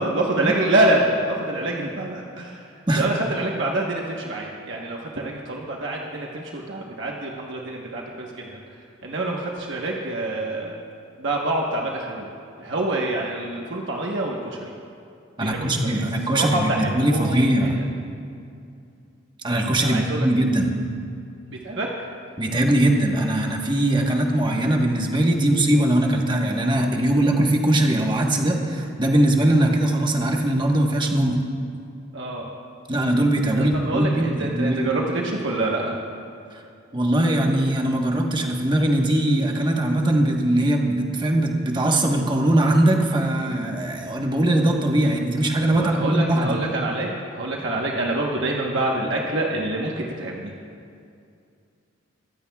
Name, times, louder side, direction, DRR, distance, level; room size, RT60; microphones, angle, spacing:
voice 1, 0.0-2.6 2.9-8.6 9.0-10.7 11.2-12.3 12.6-14.7 15.4-15.9 16.3-17.7 19.8-20.3 21.5-21.9 32.1-32.5 33.5-36.0 45.8-50.5, right 2 dB, 60° right, -1 dB, 1.1 m, -26 dB
voice 2, 15.4-17.8 19.4-20.7 22.4-31.4 32.9-35.0 36.5-36.6 36.9-46.6, right 1 dB, 25° right, 1 dB, 1.2 m, -21 dB
22.0 x 15.5 x 2.3 m, 2.5 s
head